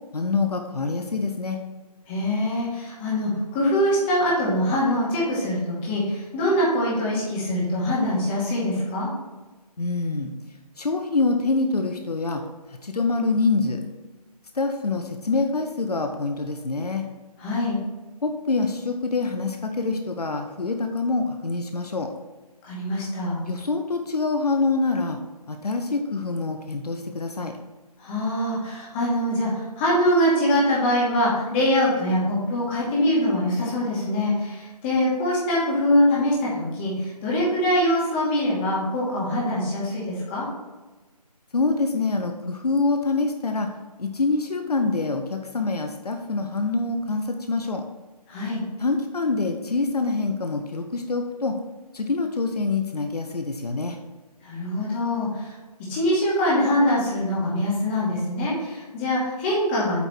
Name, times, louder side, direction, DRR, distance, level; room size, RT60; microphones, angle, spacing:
voice 1, 0.1-1.6 9.8-10.3 10.8-12.4 12.7-13.8 14.5-17.0 18.2-22.1 23.5-25.2 25.5-27.5 41.5-43.7 44.0-47.8 48.8-51.5 51.9-54.0, left 3 dB, 75° left, 5 dB, 1.0 m, -25 dB
voice 2, 2.1-9.1 17.4-17.8 22.6-23.4 28.0-40.5 48.3-48.6 54.4-55.6 55.9-60.0, left 1 dB, 15° left, -6 dB, 2.3 m, -23 dB
8.7 x 4.6 x 4.5 m, 1.2 s
figure-of-eight pair, 155°, 20 cm